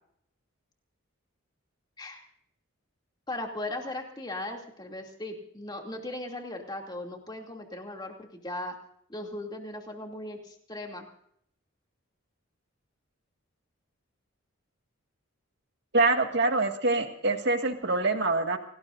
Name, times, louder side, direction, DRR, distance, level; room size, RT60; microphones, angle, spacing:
voice 1, 3.3-8.7 9.1-11.1, left 1 dB, 20° left, 2 dB, 2.7 m, -38 dB
voice 2, 15.9-18.6, right 3 dB, 50° right, 5 dB, 2.0 m, -25 dB
28.0 x 19.0 x 2.6 m, 0.68 s
head